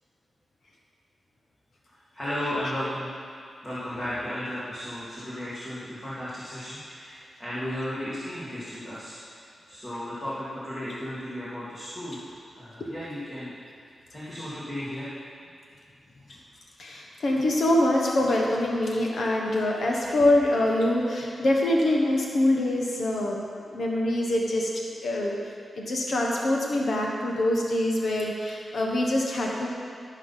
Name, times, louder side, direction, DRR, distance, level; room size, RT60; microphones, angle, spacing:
voice 1, 2.2-3.1 3.6-9.1 9.7-12.3 12.6-13.5 14.1-15.2, left 1 dB, 20° left, -11 dB, 2.0 m, -34 dB
voice 2, 16.8-23.4 23.7-24.7 25.0-29.7, left 1 dB, 55° left, -1 dB, 1.1 m, -24 dB
14.0 x 5.6 x 5.7 m, 2.2 s
wide cardioid pair, 155°, 0 cm